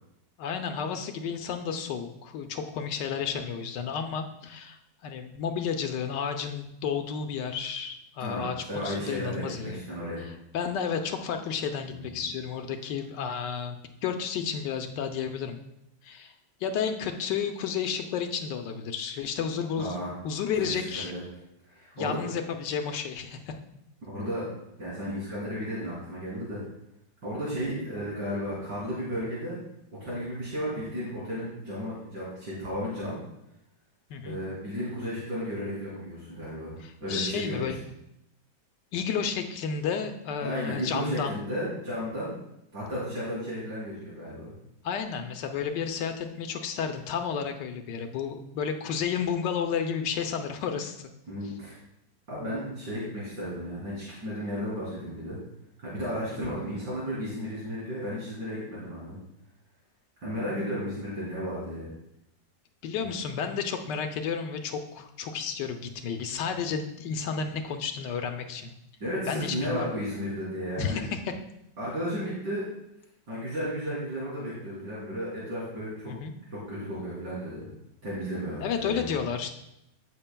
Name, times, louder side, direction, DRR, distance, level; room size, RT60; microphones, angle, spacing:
voice 1, 0.4-9.8 10.2-15.6 16.0-16.3 16.6-20.0 20.2-21.1 22.0-23.5 27.6-27.9 34.1-34.4 36.8-37.8 38.9-41.5 44.8-51.1 56.3-56.5 62.8-68.7 69.3-69.9 70.8-71.2 76.1-76.3 78.6-79.5, left 6 dB, 80° left, 6 dB, 1.3 m, -32 dB
voice 2, 8.2-10.3 11.9-12.2 19.8-20.1 20.5-21.2 21.6-22.2 24.1-24.5 24.8-26.6 27.2-29.6 30.0-33.2 34.2-37.8 40.4-42.3 42.7-44.5 51.3-51.8 52.3-55.4 55.8-59.2 60.2-61.9 63.0-63.1 69.0-71.0 71.8-72.7 73.3-76.1 76.5-77.7 78.0-79.1, equal, 75° right, -9 dB, 3.7 m, -34 dB
14.5 x 6.8 x 2.2 m, 0.83 s
omnidirectional pair, 1.9 m